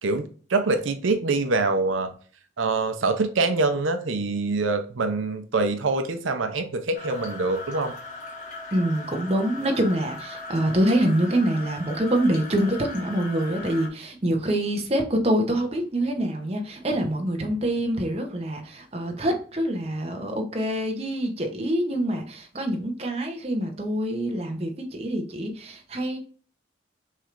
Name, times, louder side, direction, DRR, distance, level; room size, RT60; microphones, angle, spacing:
voice 1, 0.0-2.1 2.6-7.9, right 3 dB, 85° right, 0.6 m, -25 dB
sound 1, 6.9-13.9, left 2 dB, 40° left, 1.1 m, -39 dB
voice 2, 8.7-26.2, right 1 dB, 30° right, 0.7 m, -25 dB
6.1 x 3.3 x 2.5 m
head